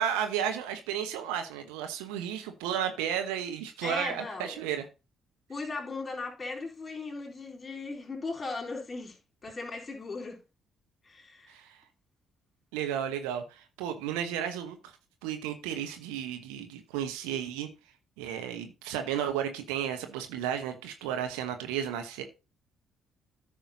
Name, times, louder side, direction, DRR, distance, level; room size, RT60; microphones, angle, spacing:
voice 1, 0.0-4.8 11.5-11.8 12.7-14.9 15.2-17.7 18.2-22.2, right 9 dB, 70° right, 1.1 m, -33 dB
voice 2, 3.8-4.6 5.5-10.4 11.0-11.6, left 3 dB, 30° left, 3.7 m, -38 dB
14.0 x 5.7 x 2.8 m
figure-of-eight pair, 45°, 0 cm